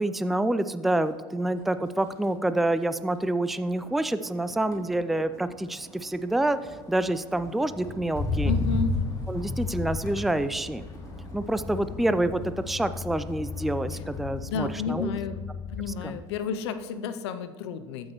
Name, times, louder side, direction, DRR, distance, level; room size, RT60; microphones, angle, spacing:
voice 1, 0.0-8.5 9.3-10.8 11.3-15.1 16.0-16.2, right 1 dB, ahead, 12 dB, 0.4 m, -27 dB
Motor vehicle (road), 0.9-1.2 1.6-16.0 16.4-16.8, left 3 dB, 25° left, 2.4 m, -35 dB
voice 2, 8.4-8.9 14.5-15.4 15.7-18.1, left 5 dB, 85° left, 10 dB, 0.6 m, -31 dB
14.5 x 6.4 x 3.0 m, 1.5 s
hypercardioid pair, 85°, 14 cm